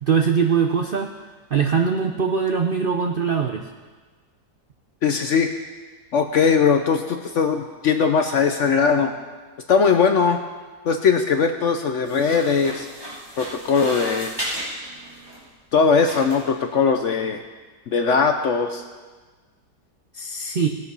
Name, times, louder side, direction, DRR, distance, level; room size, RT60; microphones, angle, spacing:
voice 1, 0.0-1.1 1.5-3.7 20.1-20.7, right 6 dB, 60° right, 3 dB, 0.5 m, -21 dB
voice 2, 5.0-5.5 6.1-9.1 9.7-10.4 10.8-12.9 13.4-14.4 15.7-17.4 17.9-18.8, left 5 dB, 60° left, 6 dB, 0.8 m, -20 dB
sound 1, 12.0-15.4 16.1-16.6, equal, 15° right, 4.5 m, -34 dB
18.5 x 6.9 x 5.4 m, 1.4 s
omnidirectional pair, 1.8 m